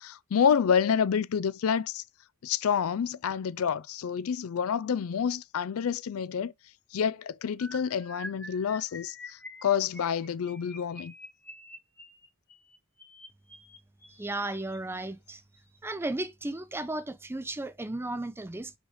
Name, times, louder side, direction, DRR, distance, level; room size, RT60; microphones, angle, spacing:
voice 1, 0.0-2.0 2.4-6.5 6.9-11.1, left 7 dB, 75° left, 0.4 m, -28 dB
sound 1, 7.6-14.8 15.5-15.8 16.0-16.3 16.6-16.8, left 1 dB, 10° left, 1.3 m, -47 dB
voice 2, 14.1-15.4 15.8-18.7, right 2 dB, 10° right, 0.5 m, -34 dB
5.2 x 4.9 x 4.8 m
head